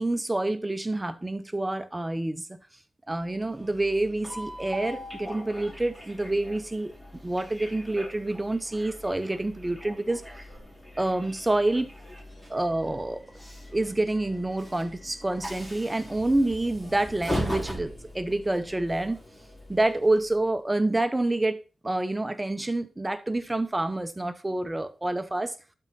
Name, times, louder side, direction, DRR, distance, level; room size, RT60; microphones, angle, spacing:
voice 1, 0.0-2.6 3.1-6.9 7.2-10.2 11.0-11.9 12.5-13.2 13.7-19.2 19.7-21.6 21.8-25.5, right 2 dB, 15° right, 0.7 m, -27 dB
Train, 3.2-20.5, equal, 10° left, 2.6 m, -40 dB
12.0 x 4.3 x 4.1 m
wide cardioid pair, 95°, 0 cm